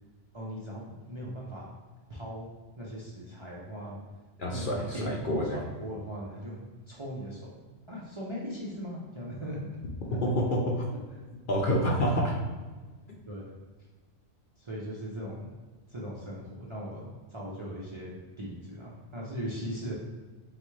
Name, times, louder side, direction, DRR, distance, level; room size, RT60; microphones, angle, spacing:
voice 1, 0.3-1.7 2.1-2.5 2.8-4.0 4.5-7.6 7.9-9.6 10.1-10.2 13.3-13.5 14.6-15.5 15.9-19.9, equal, 35° right, -5 dB, 0.6 m, -39 dB
voice 2, 4.4-5.6 10.2-10.9 11.5-12.4, equal, 50° left, -2 dB, 0.8 m, -27 dB
4.0 x 3.5 x 3.1 m, 1.4 s
omnidirectional pair, 1.2 m